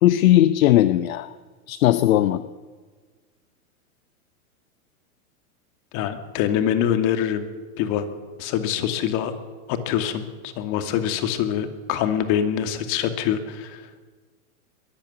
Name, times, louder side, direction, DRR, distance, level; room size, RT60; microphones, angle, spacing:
voice 1, 0.0-1.3 1.7-2.4, left 13 dB, 65° left, 14 dB, 1.0 m, -18 dB
voice 2, 5.9-7.5 7.8-8.1 8.4-9.3 9.7-13.8, left 9 dB, 45° left, 9 dB, 2.6 m, -24 dB
22.0 x 14.5 x 8.4 m, 1.5 s
hypercardioid pair, 120°, 44 cm